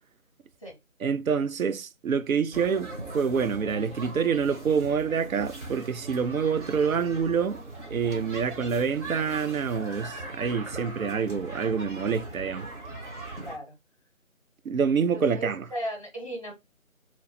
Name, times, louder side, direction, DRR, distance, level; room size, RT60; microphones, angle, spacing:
voice 1, 1.0-7.6 7.9-12.7 14.7-15.6, right 6 dB, 80° right, 0.5 m, -27 dB
sound 1, 2.5-13.6, right 2 dB, 55° right, 1.2 m, -40 dB
voice 2, 13.4-13.7 15.0-16.5, right 1 dB, 25° left, 0.8 m, -36 dB
3.0 x 2.1 x 4.0 m
figure-of-eight pair, 160°, 41 cm